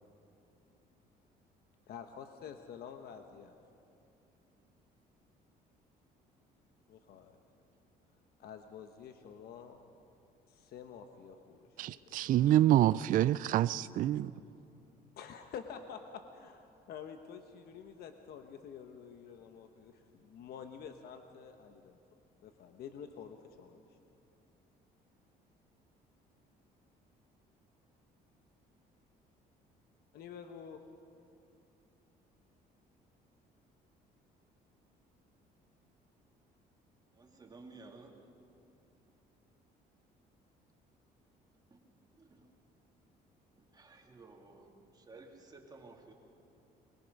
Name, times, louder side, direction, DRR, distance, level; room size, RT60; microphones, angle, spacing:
voice 1, 1.9-3.5 6.9-7.4 8.4-9.8 10.5-12.4 15.2-22.0 22.4-24.0 30.1-30.8, left 7 dB, 65° left, 1.1 m, -49 dB
voice 2, 11.8-14.3, right 13 dB, 55° right, 0.4 m, -27 dB
voice 3, 37.1-38.1 41.7-41.8 42.2-42.5 43.6-46.1, right 3 dB, 25° right, 2.7 m, -55 dB
23.5 x 21.0 x 5.4 m
cardioid pair, 110°, 17 cm